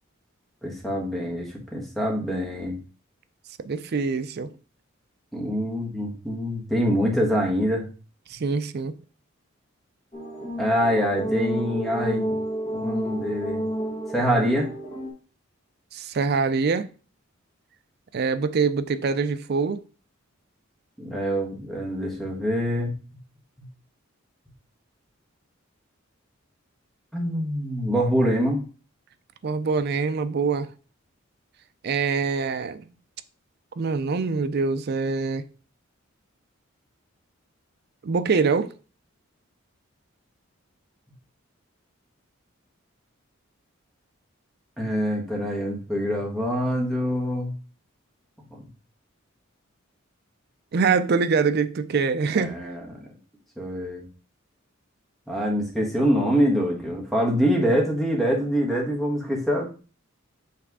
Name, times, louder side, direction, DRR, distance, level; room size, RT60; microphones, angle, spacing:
voice 1, 0.6-2.8 5.3-7.8 10.6-12.4 12.7-13.6 14.1-14.7 21.0-22.9 27.1-28.6 44.8-47.5 48.5-48.6 52.3-53.1 53.6-54.0 55.3-59.7, equal, ahead, 1.4 m, -25 dB
voice 2, 3.6-4.5 8.3-8.9 15.9-16.9 18.1-19.8 29.4-30.7 31.8-32.9 33.8-35.4 38.0-38.7 50.7-52.5, right 5 dB, 50° right, 0.4 m, -24 dB
sound 1, 10.1-15.1, right 1 dB, 30° left, 1.4 m, -30 dB
5.9 x 3.4 x 4.7 m
head